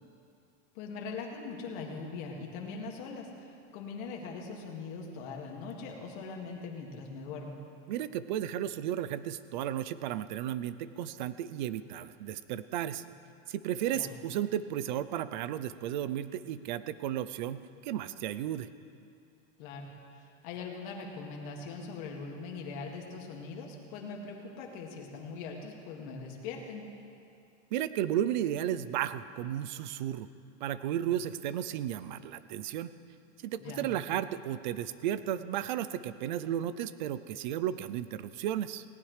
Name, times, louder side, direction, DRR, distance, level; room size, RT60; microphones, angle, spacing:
voice 1, 0.7-7.6 13.9-14.1 19.6-19.9 20.2-26.8 33.6-33.9, left 4 dB, 40° left, 0 dB, 2.1 m, -41 dB
voice 2, 7.9-13.0 13.5-18.7 27.7-30.3 30.6-32.9 33.4-38.8, right 11 dB, 40° right, 14 dB, 0.4 m, -34 dB
18.5 x 18.5 x 3.2 m, 2.5 s
supercardioid pair, 175°, 37 cm